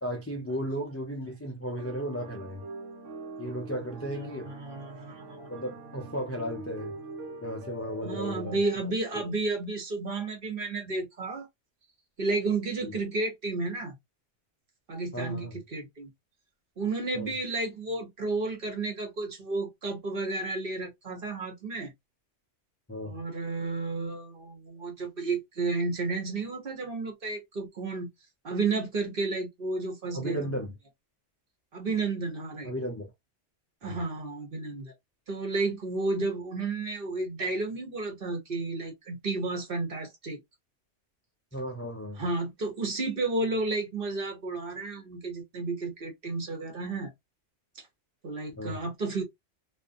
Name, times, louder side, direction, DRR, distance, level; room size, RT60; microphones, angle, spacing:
voice 1, 0.0-2.6 3.4-4.5 5.5-6.9 7.4-8.6 9.1-9.2 12.8-12.9 15.1-15.6 17.1-17.3 22.9-23.2 30.1-30.7 32.6-33.1 33.8-33.9 41.5-42.2 48.6-48.8, equal, 20° left, 0.4 m, -35 dB
sound 1, 1.7-8.8, right 2 dB, 85° right, 1.1 m, -44 dB
voice 2, 4.1-5.5 8.0-11.5 12.2-14.0 14.9-16.1 16.8-21.9 23.0-28.1 28.4-30.5 31.7-32.7 33.8-35.0 35.3-40.4 42.2-47.1 47.7-47.9 48.2-49.2, right 3 dB, 50° right, 1.1 m, -32 dB
2.6 x 2.4 x 2.5 m
omnidirectional pair, 1.2 m